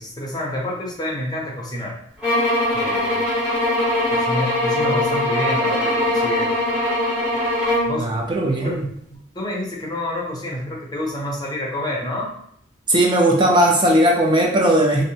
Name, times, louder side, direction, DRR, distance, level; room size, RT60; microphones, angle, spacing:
voice 1, 0.0-2.0 2.7-3.3 4.1-6.5 7.9-8.1 8.6-8.8 9.1-12.4, left 1 dB, 20° left, -3 dB, 0.5 m, -28 dB
sound 1, 2.2-8.0, left 1 dB, 5° right, 0.9 m, -21 dB
voice 2, 8.0-8.9 12.9-15.0, right 1 dB, 25° right, -1 dB, 0.5 m, -17 dB
2.7 x 2.0 x 2.7 m, 0.70 s
head